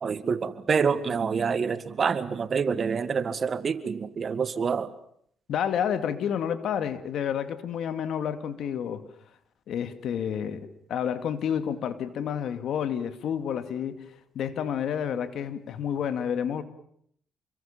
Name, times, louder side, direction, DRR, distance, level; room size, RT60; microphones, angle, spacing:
voice 1, 0.0-4.9, right 6 dB, 45° right, 13 dB, 1.9 m, -27 dB
voice 2, 5.5-9.0 9.7-14.1 14.3-16.6, left 8 dB, 70° left, 10 dB, 2.4 m, -30 dB
29.5 x 22.5 x 7.4 m, 0.67 s
cardioid pair, 90°, 0 cm